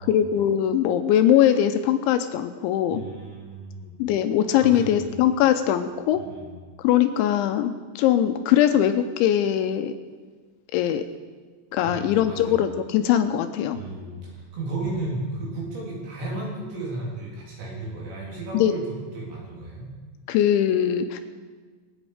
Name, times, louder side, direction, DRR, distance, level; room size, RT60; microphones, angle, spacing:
voice 1, 0.1-3.0 4.0-6.2 6.8-9.9 10.7-11.1 11.7-13.8 18.5-18.7 20.3-21.2, left 10 dB, 80° left, 8 dB, 2.8 m, -21 dB
voice 2, 2.9-4.0 4.6-5.2 6.1-6.5 11.8-12.6 13.7-18.8 19.1-19.9, right 2 dB, 65° right, -4 dB, 5.6 m, -34 dB
26.5 x 8.8 x 4.9 m, 1.4 s
omnidirectional pair, 5.8 m